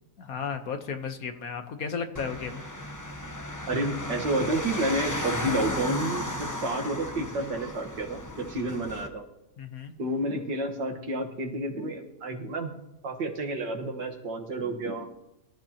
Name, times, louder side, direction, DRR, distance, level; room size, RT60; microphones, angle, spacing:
voice 1, 0.2-2.7 9.6-9.9, left 6 dB, 60° left, 7 dB, 1.5 m, -34 dB
sound 1, 2.1-9.1, left 1 dB, 15° left, 0.7 m, -35 dB
voice 2, 3.7-9.2 10.0-12.8 13.0-15.1, right 1 dB, 85° right, 2 dB, 2.2 m, -30 dB
23.0 x 13.5 x 2.9 m, 0.94 s
omnidirectional pair, 1.8 m